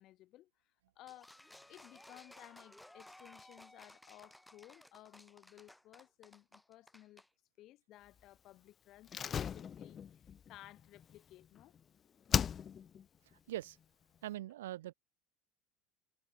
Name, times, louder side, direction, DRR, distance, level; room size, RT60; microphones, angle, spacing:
voice 1, 0.0-1.4 1.7-7.2 7.6-11.7, left 15 dB, 55° left, 7.1 m, -58 dB
sound 1, 1.1-7.3, left 1 dB, 5° left, 3.8 m, -58 dB
Slam, 9.1-11.8 12.3-13.0 13.3-13.4, left 8 dB, 35° left, 0.9 m, -37 dB
voice 2, 14.2-14.9, right 14 dB, 85° right, 0.4 m, -42 dB
hypercardioid pair, 85°, 0 cm